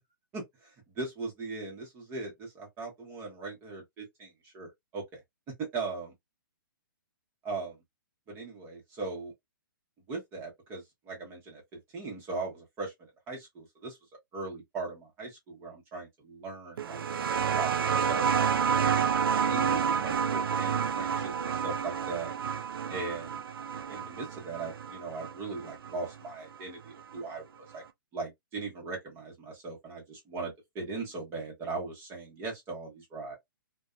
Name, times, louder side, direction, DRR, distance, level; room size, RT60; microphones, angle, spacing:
voice 1, 0.3-5.2 5.7-6.1 7.4-7.8 8.3-9.3 10.1-11.6 11.9-14.0 14.3-17.0 17.4-18.3 18.6-19.0 19.4-22.3 22.9-23.4 23.9-27.8 28.1-33.3, right 3 dB, 20° right, 1.1 m, -39 dB
sound 1, 16.8-26.0 27.2-27.3, right 7 dB, 90° right, 0.4 m, -29 dB
2.5 x 2.3 x 2.3 m
hypercardioid pair, 155°, 12 cm